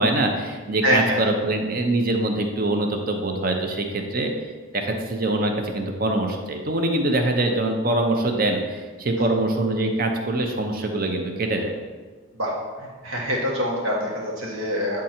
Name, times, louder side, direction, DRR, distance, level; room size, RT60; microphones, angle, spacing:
voice 1, 0.0-4.3 4.7-11.8, right 2 dB, 45° right, 4 dB, 0.7 m, -24 dB
voice 2, 0.8-1.2 12.3-12.5 12.8-15.0, equal, 80° right, -2 dB, 1.6 m, -25 dB
9.0 x 3.7 x 4.3 m, 1.4 s
head